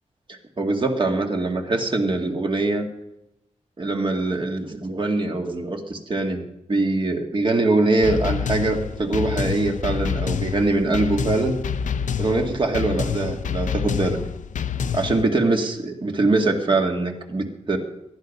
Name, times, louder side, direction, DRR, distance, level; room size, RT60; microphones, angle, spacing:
voice 1, 0.3-2.8 3.8-6.4 6.7-11.6 12.2-14.2 14.9-17.8, right 2 dB, 40° right, 3 dB, 2.1 m, -23 dB
sound 1, 8.0-15.2, left 7 dB, 90° left, 0.7 m, -27 dB
18.5 x 12.5 x 5.4 m, 0.86 s
wide cardioid pair, 115°, 13 cm